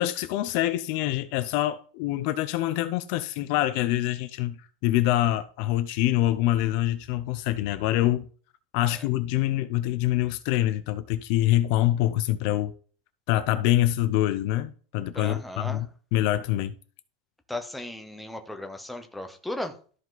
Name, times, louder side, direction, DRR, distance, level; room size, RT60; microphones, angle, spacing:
voice 1, 0.0-8.3 8.7-12.7 13.3-15.9 16.1-16.7, left 14 dB, 45° left, 0.5 m, -25 dB
voice 2, 15.1-15.8 17.5-19.8, left 1 dB, ahead, 0.7 m, -36 dB
12.5 x 4.9 x 3.9 m
supercardioid pair, 170°, 0 cm